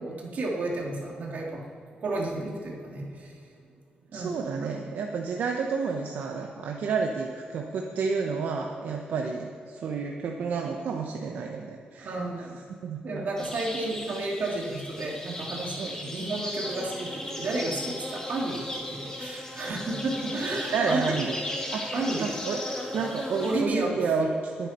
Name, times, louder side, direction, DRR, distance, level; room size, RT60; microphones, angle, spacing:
voice 1, 0.0-1.6 2.0-3.4 4.1-4.4 6.4-6.5 12.0-12.6 13.0-21.1 21.9-22.3 23.4-24.0, right 2 dB, 60° right, -2 dB, 2.6 m, -32 dB
voice 2, 4.1-12.5 12.8-13.2 15.8-16.0 20.7-21.3 21.7-21.9 22.2-22.6 22.9-24.7, right 5 dB, 80° right, 2 dB, 1.0 m, -30 dB
sound 1, 13.4-23.6, left 1 dB, 20° left, 2.0 m, -36 dB
20.5 x 9.1 x 4.4 m, 2.4 s
wide cardioid pair, 140°, 3 cm